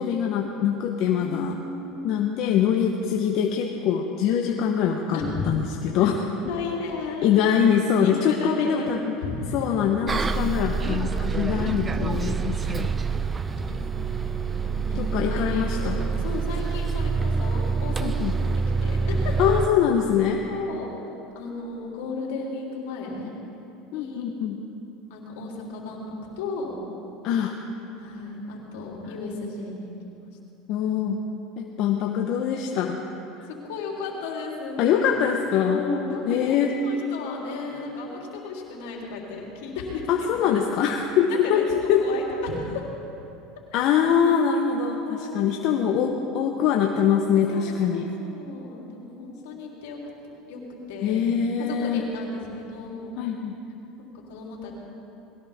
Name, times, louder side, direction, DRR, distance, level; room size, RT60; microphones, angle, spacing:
voice 1, 0.0-1.6 2.0-5.2 5.4-6.3 7.2-9.2 9.5-12.9 15.0-16.0 18.0-18.3 19.4-20.4 23.9-24.6 27.2-27.5 30.7-31.2 31.6-33.0 34.8-35.8 36.3-36.7 40.1-42.1 43.7-48.1 51.0-52.0 53.2-53.5, left 8 dB, 60° left, 2 dB, 1.1 m, -23 dB
voice 2, 1.2-2.1 5.1-5.5 6.0-6.1 6.5-7.3 8.0-8.9 9.2-9.6 11.5-12.0 13.5-15.9 16.2-18.1 18.8-19.4 20.5-21.0 21.4-23.3 23.9-24.3 25.1-26.7 28.0-30.3 33.5-35.2 35.6-40.5 41.3-42.8 45.1-46.2 47.5-50.0 50.5-50.6 50.9-51.3 51.6-53.1 54.0-54.8, left 4 dB, 80° left, -2 dB, 3.6 m, -35 dB
Bus, 10.1-19.7, right 5 dB, 25° right, 0.6 m, -26 dB
21.0 x 17.0 x 3.7 m, 2.9 s
supercardioid pair, 110°, 0 cm